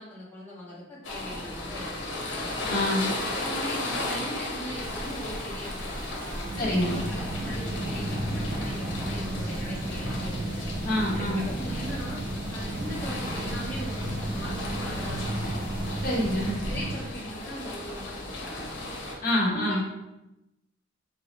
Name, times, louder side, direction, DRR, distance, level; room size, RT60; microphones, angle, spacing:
voice 1, 0.0-2.5 3.1-6.2 6.5-10.6 11.1-12.2 12.5-15.6 16.5-18.9 19.5-19.8, equal, 10° left, -8 dB, 0.9 m, -40 dB
Rain Interior ambience, 1.0-19.2, left 1 dB, 75° left, 0.9 m, -35 dB
voice 2, 2.7-3.1 6.6-7.0 10.8-11.5 16.0-16.6 19.2-19.8, left 1 dB, 50° left, -5 dB, 1.2 m, -26 dB
sound 1, 4.7-16.5, equal, 75° right, 1.1 m, -40 dB
sound 2, 6.4-17.0, right 2 dB, 40° right, 0.4 m, -34 dB
4.7 x 2.1 x 3.9 m, 0.92 s
head